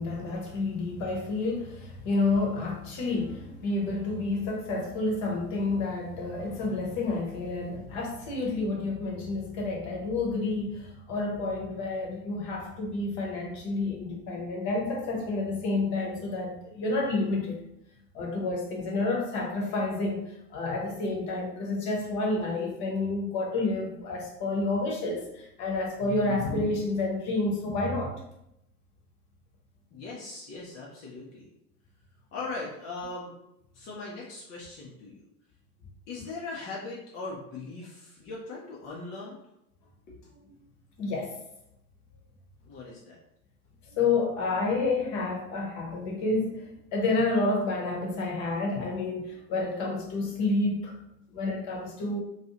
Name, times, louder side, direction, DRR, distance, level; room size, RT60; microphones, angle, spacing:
voice 1, 0.0-17.6 18.1-28.1 41.0-41.3 43.9-50.9 51.3-52.2, left 3 dB, 40° left, -1 dB, 0.8 m, -29 dB
voice 2, 29.9-31.5 32.3-33.4 33.7-35.3 36.1-39.4 40.1-40.3 42.6-43.2 51.3-51.4, left 3 dB, 25° left, -5 dB, 0.4 m, -40 dB
2.6 x 2.3 x 2.7 m, 0.82 s
figure-of-eight pair, 75°, 47 cm